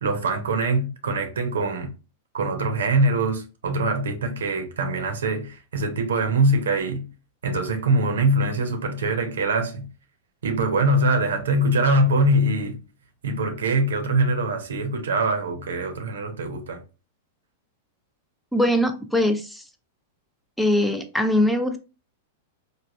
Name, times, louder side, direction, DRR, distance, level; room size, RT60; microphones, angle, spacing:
voice 1, 0.0-1.9 2.3-7.1 7.4-9.9 10.4-12.8 13.2-16.8, right 2 dB, 80° right, 0.6 m, -23 dB
voice 2, 18.5-19.6 20.6-21.8, left 1 dB, 5° left, 0.4 m, -21 dB
3.3 x 2.1 x 2.5 m
hypercardioid pair, 110°, 0 cm